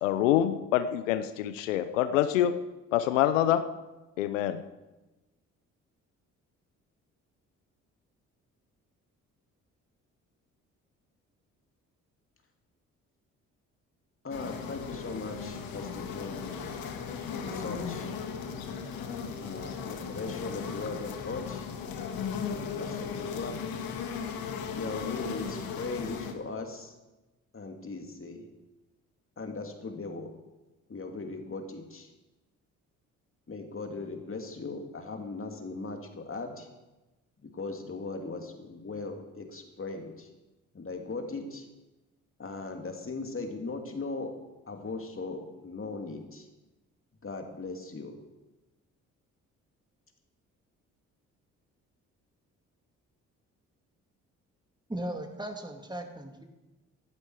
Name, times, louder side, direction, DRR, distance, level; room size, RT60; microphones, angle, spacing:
voice 1, 0.0-2.5 2.9-3.6 4.2-4.6, left 11 dB, 90° left, 11 dB, 0.6 m, -26 dB
voice 2, 14.2-16.4 17.4-18.1 19.4-21.7 22.5-23.7 24.7-26.9 27.5-28.5 29.4-30.3 30.9-32.1 33.5-36.7 37.4-40.3 40.7-41.7 42.4-44.4 44.7-46.5 47.2-48.2, left 3 dB, 35° left, 4 dB, 2.7 m, -38 dB
sound 1, 14.3-26.3, left 6 dB, 70° left, 1.7 m, -36 dB
voice 3, 54.9-56.4, right 1 dB, 10° right, 4 dB, 2.4 m, -37 dB
16.0 x 11.5 x 4.8 m, 1.1 s
hypercardioid pair, 45°, 37 cm